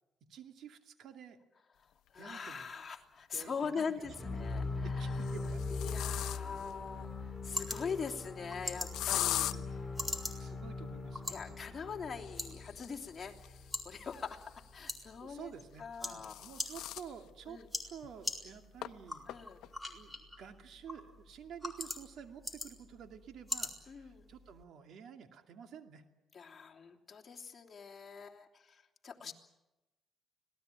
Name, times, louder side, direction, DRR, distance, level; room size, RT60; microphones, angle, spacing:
voice 1, 0.3-1.4 2.2-2.7 3.3-4.4 4.8-6.3 9.4-9.8 10.4-11.7 15.2-19.3 19.9-26.0 29.2-29.3, right 7 dB, 70° right, 6 dB, 2.5 m, -51 dB
voice 2, 2.1-5.3 5.7-9.8 11.3-15.5 15.8-16.5 17.5-17.7 19.3-19.6 23.9-24.3 26.3-29.3, left 6 dB, 35° left, 0 dB, 3.2 m, -43 dB
sound 1, 2.6-2.7 4.1-4.5 5.1-6.7 8.9-9.5 12.1-14.8 15.8-17.1 17.6-17.7 18.0-18.1 18.8-18.9 19.3-19.7, left 13 dB, 85° left, 0.8 m, -40 dB
sound 2, 4.0-14.1, left 3 dB, 15° left, 3.3 m, -41 dB
sound 3, 6.6-24.6, left 1 dB, 5° right, 4.5 m, -45 dB
26.0 x 18.5 x 9.3 m, 1.0 s
cardioid pair, 90°, 0 cm